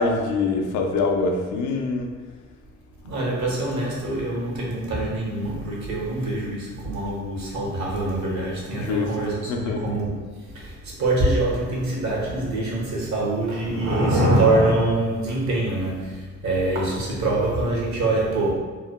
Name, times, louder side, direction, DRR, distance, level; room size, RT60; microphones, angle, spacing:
voice 1, 0.0-2.1 8.7-9.9, left 3 dB, 75° left, 3 dB, 0.5 m, -24 dB
voice 2, 3.0-18.6, right 2 dB, 65° right, -4 dB, 1.0 m, -24 dB
3.1 x 2.1 x 2.2 m, 1.4 s
cardioid pair, 90°, 30 cm